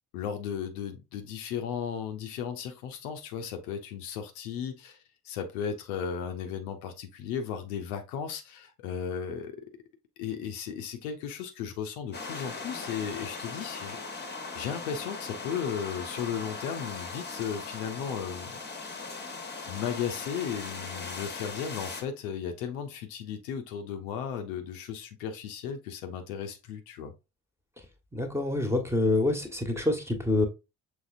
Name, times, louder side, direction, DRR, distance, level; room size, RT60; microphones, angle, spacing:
voice 1, 0.1-5.0 5.2-9.7 10.2-14.0 14.5-18.5 19.7-27.1, left 7 dB, 70° left, 0.7 m, -35 dB
sound 1, 12.1-22.0, left 4 dB, 25° left, 1.1 m, -39 dB
voice 2, 28.1-30.5, left 2 dB, 5° right, 1.3 m, -26 dB
6.2 x 3.2 x 2.4 m
figure-of-eight pair, 40°, 45 cm